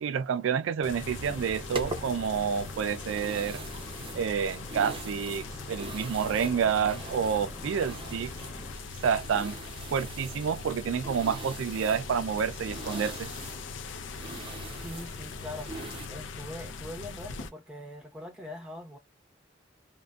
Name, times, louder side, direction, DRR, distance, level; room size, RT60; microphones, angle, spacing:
voice 1, 0.0-3.6 4.1-8.3 9.0-9.6 9.9-13.3, right 7 dB, 85° right, 0.3 m, -29 dB
sound 1, 0.8-17.5, left 4 dB, 70° left, 0.4 m, -41 dB
sound 2, 0.9-8.8, left 2 dB, 35° left, 1.1 m, -46 dB
sound 3, 1.1-16.1, right 2 dB, 30° right, 0.5 m, -43 dB
voice 2, 14.8-15.7 16.1-19.0, left 1 dB, 5° right, 0.8 m, -42 dB
2.5 x 2.2 x 2.2 m
head